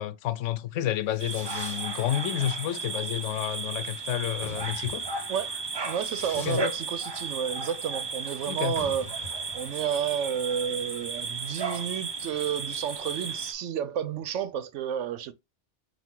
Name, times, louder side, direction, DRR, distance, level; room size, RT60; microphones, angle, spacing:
voice 1, 0.0-5.0 6.5-6.6 8.5-8.7, left 12 dB, 85° left, 0.9 m, -30 dB
Fireworks, 0.7-13.0, left 2 dB, 45° left, 1.2 m, -47 dB
sound 1, 1.2-13.5, right 4 dB, 30° right, 0.5 m, -34 dB
voice 2, 5.3-15.3, right 8 dB, 80° right, 0.9 m, -31 dB
4.6 x 2.5 x 3.7 m
omnidirectional pair, 1.3 m